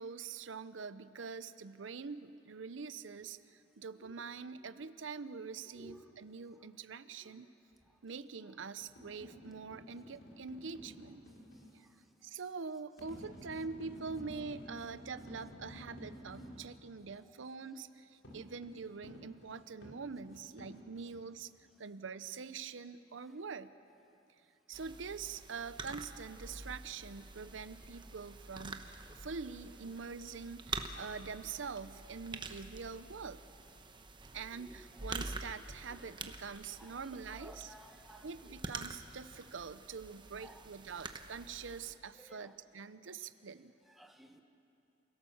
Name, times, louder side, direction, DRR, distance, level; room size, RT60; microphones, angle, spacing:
voice 1, 0.0-7.5 8.0-11.2 11.7-11.9 12.2-21.5 21.8-23.7 24.7-33.4 34.3-37.7 38.2-43.7, right 5 dB, 75° right, 13 dB, 0.7 m, -45 dB
sound 1, 8.8-11.7 13.0-16.7 18.2-21.2, left 1 dB, 80° left, 4.2 m, -52 dB
sound 2, 24.7-41.9, right 3 dB, 25° right, 1.0 m, -47 dB
voice 2, 37.4-38.2 40.4-40.5 42.2-42.5 44.0-44.4, equal, ahead, 3 dB, 1.4 m, -55 dB
28.5 x 17.0 x 7.1 m, 2.7 s
head